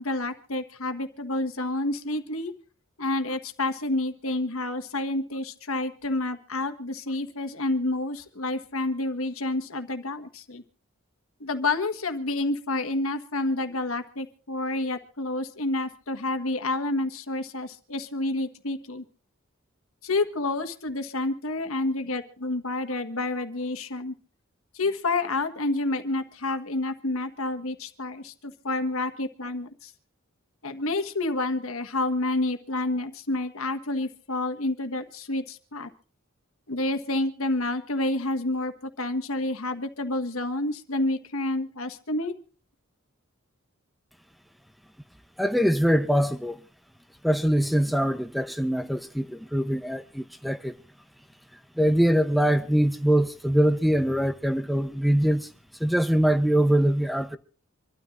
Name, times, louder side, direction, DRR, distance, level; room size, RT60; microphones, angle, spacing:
voice 1, 0.0-2.5 3.0-10.6 11.4-19.0 20.0-24.1 24.7-29.9 30.6-35.9 36.7-42.3, left 2 dB, 80° left, 1.5 m, -29 dB
voice 2, 45.4-46.6 47.2-50.7 51.8-55.5 55.8-57.4, equal, ahead, 0.7 m, -23 dB
26.5 x 13.0 x 2.5 m
head